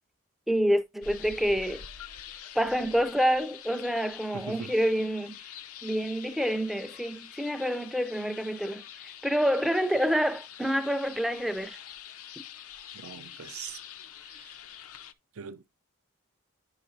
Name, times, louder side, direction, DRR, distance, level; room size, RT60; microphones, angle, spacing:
voice 1, 0.5-1.8 2.5-5.4 5.8-11.8, equal, ahead, 0.4 m, -27 dB
sound 1, 1.0-15.1, left 9 dB, 85° left, 0.6 m, -46 dB
voice 2, 4.3-4.7 12.9-13.8 14.2-14.6 15.3-15.7, right 7 dB, 75° right, 0.5 m, -42 dB
9.8 x 5.8 x 2.6 m
head